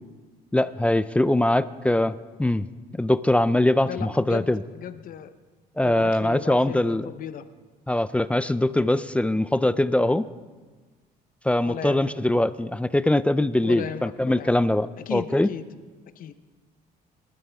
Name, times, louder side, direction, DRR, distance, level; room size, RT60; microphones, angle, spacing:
voice 1, 0.5-2.7 3.0-4.6 5.8-7.0 7.9-10.2 11.4-15.5, left 1 dB, 5° left, 15 dB, 0.3 m, -22 dB
voice 2, 3.8-5.3 5.8-7.4 11.6-12.1 13.6-14.6 15.1-15.7 16.2-16.3, left 9 dB, 55° left, 11 dB, 0.8 m, -35 dB
22.0 x 12.5 x 3.5 m, 1.4 s
cardioid pair, 110°, 17 cm